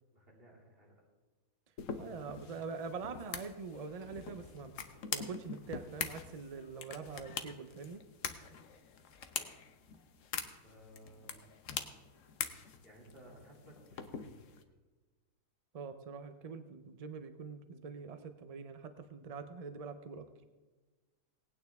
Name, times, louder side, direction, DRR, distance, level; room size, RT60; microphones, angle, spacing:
voice 1, 0.1-1.0 10.6-11.5 12.8-13.8 14.0-14.5, right 1 dB, 35° right, -3 dB, 3.1 m, -58 dB
sound 1, 1.8-14.6, left 7 dB, 60° left, 1.1 m, -44 dB
voice 2, 2.0-4.7 5.1-8.0 15.7-20.3, right 5 dB, 65° right, 9 dB, 0.3 m, -44 dB
19.0 x 9.1 x 3.5 m, 1.3 s
omnidirectional pair, 1.7 m